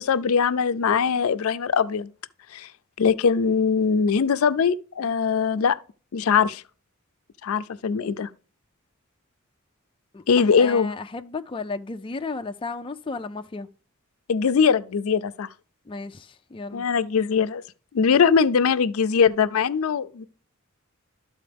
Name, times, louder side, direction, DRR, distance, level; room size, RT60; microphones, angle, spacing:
voice 1, 0.0-2.1 2.5-2.7 3.0-5.8 6.1-6.6 7.4-8.3 10.3-10.9 14.3-15.5 16.7-17.6 17.9-20.3, left 6 dB, 85° left, 0.4 m, -21 dB
voice 2, 10.1-13.7 15.9-16.9, left 3 dB, 25° left, 0.4 m, -34 dB
12.5 x 4.2 x 3.4 m
head